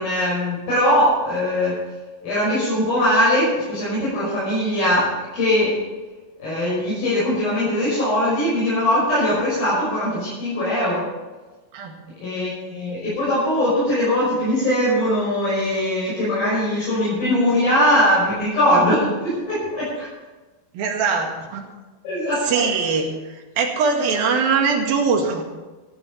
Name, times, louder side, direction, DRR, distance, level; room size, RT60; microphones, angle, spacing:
voice 1, 0.0-1.8 2.2-5.8 6.4-11.0 12.2-19.9 22.0-22.7, left 1 dB, 70° left, -9 dB, 8.0 m, -21 dB
voice 2, 20.7-21.6 22.5-23.1 23.6-25.4, right 5 dB, 75° right, 2 dB, 3.8 m, -21 dB
15.0 x 11.5 x 5.7 m, 1.2 s
omnidirectional pair, 4.3 m